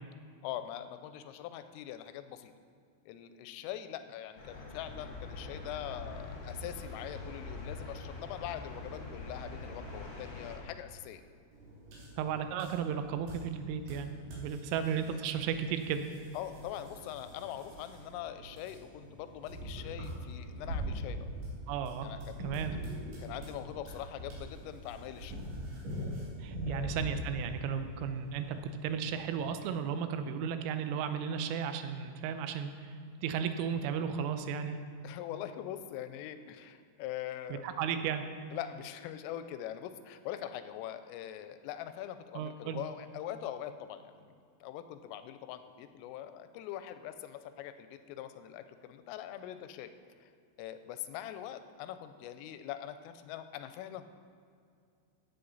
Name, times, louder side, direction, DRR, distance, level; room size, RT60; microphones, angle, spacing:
voice 1, 0.4-2.5 3.1-11.2 14.7-14.8 16.3-21.3 22.0-22.9 23.2-25.4 26.6-26.9 35.0-37.7 38.5-49.9 50.2-50.3 50.6-54.0, left 11 dB, 90° left, 10 dB, 3.2 m, -43 dB
sound 1, 4.4-10.6, left 2 dB, 45° left, 1.6 m, -44 dB
sound 2, 11.5-29.7, right 2 dB, 65° right, 4.7 m, -53 dB
voice 2, 12.2-16.1 21.7-22.1 22.4-22.8 26.4-34.8 37.6-38.2 42.4-42.8, right 7 dB, 85° right, 8 dB, 3.3 m, -34 dB
sound 3, 19.4-27.7, equal, 50° right, 2.3 m, -40 dB
15.5 x 8.3 x 4.0 m, 2.4 s
omnidirectional pair, 5.8 m